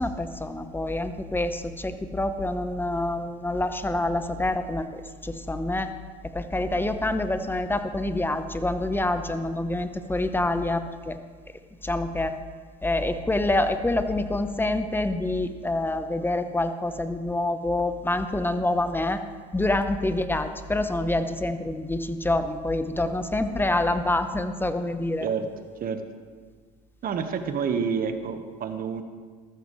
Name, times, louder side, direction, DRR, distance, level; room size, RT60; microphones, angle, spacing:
voice 1, 0.0-5.9 6.3-11.2 11.8-12.3 12.8-19.2 19.5-25.3, left 2 dB, 10° left, 9 dB, 0.9 m, -26 dB
voice 2, 27.0-29.0, right 6 dB, 45° right, 8 dB, 1.3 m, -28 dB
13.5 x 13.5 x 3.2 m, 1.6 s
supercardioid pair, 80°, 20 cm